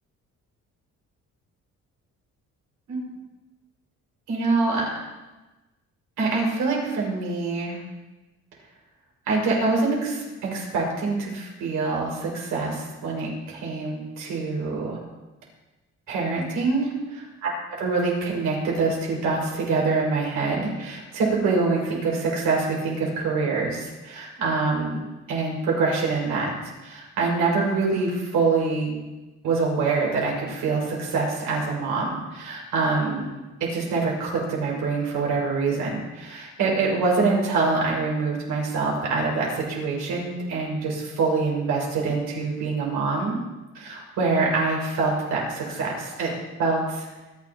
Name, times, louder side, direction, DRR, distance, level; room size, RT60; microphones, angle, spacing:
voice 1, 4.3-4.9 6.2-7.8 9.3-15.0 16.1-16.9 17.4-17.5 17.8-25.0 25.3-26.5 26.8-28.9 29.4-33.3 33.6-43.4 43.7-46.3 46.6-47.1, right 3 dB, 90° right, -2 dB, 5.8 m, -25 dB
27.5 x 11.5 x 3.0 m, 1.1 s
cardioid pair, 90°, 30 cm